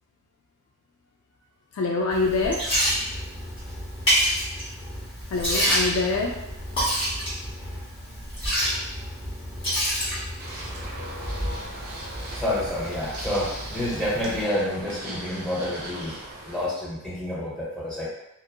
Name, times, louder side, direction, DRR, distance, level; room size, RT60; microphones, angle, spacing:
voice 1, 1.8-2.7 5.3-6.4, left 3 dB, 70° left, -1 dB, 0.3 m, -25 dB
Liquid, 2.1-14.4, equal, 25° left, 1.4 m, -29 dB
sound 1, 10.4-16.7, right 1 dB, 45° right, 0.6 m, -39 dB
voice 2, 12.3-16.1 16.5-18.1, left 1 dB, 5° left, -8 dB, 0.7 m, -28 dB
2.6 x 2.4 x 2.2 m, 0.89 s
head